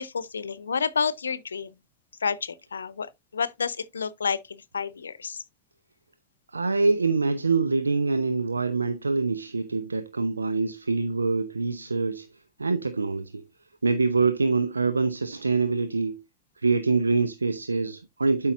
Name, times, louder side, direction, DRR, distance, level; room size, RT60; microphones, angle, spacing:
voice 1, 0.0-1.8 2.2-5.4, left 6 dB, 70° left, 0.7 m, -30 dB
voice 2, 6.5-12.3 12.6-13.4 13.8-16.2 16.6-18.5, right 4 dB, 80° right, 0.6 m, -25 dB
12.0 x 5.4 x 2.6 m
figure-of-eight pair, 90°, 0 cm